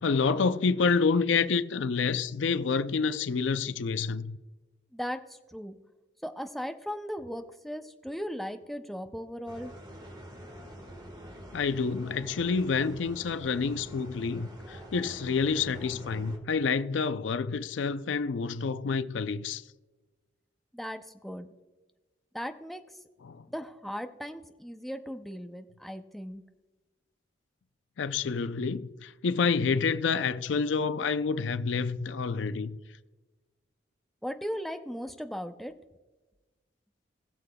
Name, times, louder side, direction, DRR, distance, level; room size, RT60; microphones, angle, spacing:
voice 1, 0.0-4.4 11.5-19.6 23.2-23.4 28.0-32.8, left 5 dB, 85° left, 0.5 m, -28 dB
voice 2, 4.9-5.8 6.2-9.7 20.7-21.5 22.3-22.8 23.5-26.4 34.2-35.7, equal, ahead, 0.5 m, -37 dB
sound 1, 9.4-16.4, equal, 25° right, 1.6 m, -46 dB
20.5 x 6.8 x 2.3 m
head